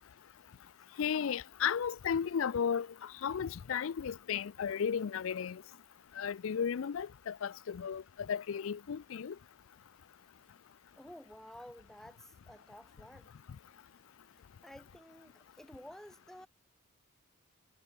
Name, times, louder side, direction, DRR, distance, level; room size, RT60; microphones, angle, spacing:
voice 1, 1.0-5.6 6.2-9.4, left 7 dB, 65° left, 0.4 m, -34 dB
voice 2, 11.0-13.4 14.6-16.5, equal, ahead, 0.5 m, -52 dB
head